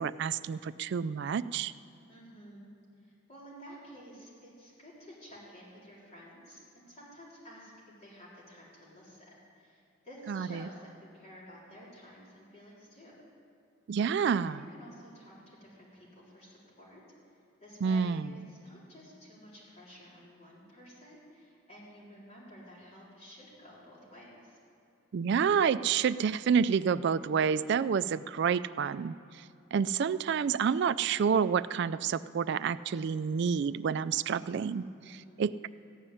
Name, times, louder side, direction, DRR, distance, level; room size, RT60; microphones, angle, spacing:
voice 1, 0.0-1.7 10.3-10.7 13.9-14.6 17.8-18.3 25.1-29.4 29.7-35.7, right 6 dB, 55° right, 15 dB, 0.3 m, -29 dB
voice 2, 2.1-7.7 8.0-13.2 14.3-17.0 17.3-24.6 35.0-35.6, equal, 30° left, -7 dB, 3.9 m, -52 dB
15.0 x 5.6 x 9.8 m, 2.5 s
head